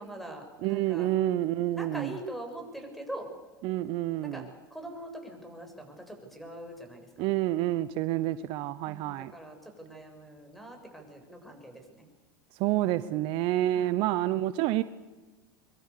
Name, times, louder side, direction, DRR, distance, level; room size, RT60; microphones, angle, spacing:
voice 1, 0.0-1.1 1.7-3.3 4.2-4.5 4.7-7.3 8.8-12.0 13.7-13.9, right 1 dB, ahead, 4 dB, 7.3 m, -43 dB
voice 2, 0.6-2.1 3.6-4.5 7.2-9.3 12.6-14.8, right 14 dB, 55° right, 14 dB, 0.9 m, -28 dB
24.0 x 23.5 x 6.9 m, 1.2 s
hypercardioid pair, 90°, 10 cm